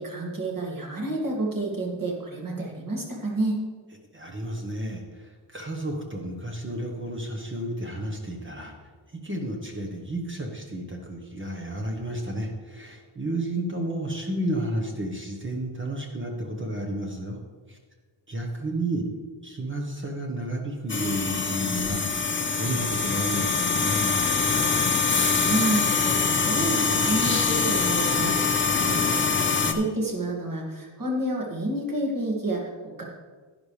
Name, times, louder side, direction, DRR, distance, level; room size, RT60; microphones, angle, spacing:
voice 1, 0.0-3.6 25.5-33.0, right 2 dB, 45° right, -2 dB, 2.3 m, -29 dB
voice 2, 4.1-17.4 17.7-17.8 18.3-19.1 19.4-22.3 22.6-24.2, right 1 dB, 25° right, 1 dB, 1.1 m, -32 dB
sound 1, 20.9-29.7, left 5 dB, 25° left, 0.6 m, -24 dB
10.5 x 10.5 x 3.3 m, 1.4 s
wide cardioid pair, 160°, 48 cm